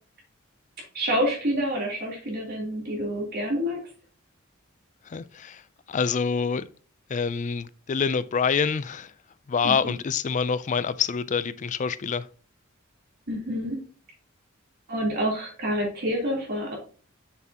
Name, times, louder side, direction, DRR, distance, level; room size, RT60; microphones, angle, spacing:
voice 1, 0.9-3.8 9.6-10.0 13.3-13.8 14.9-16.8, equal, 50° right, 3.3 m, -28 dB
voice 2, 5.1-5.6 5.9-6.6 7.1-9.1 9.5-12.3, left 6 dB, 35° left, 0.4 m, -26 dB
7.1 x 6.4 x 2.9 m
head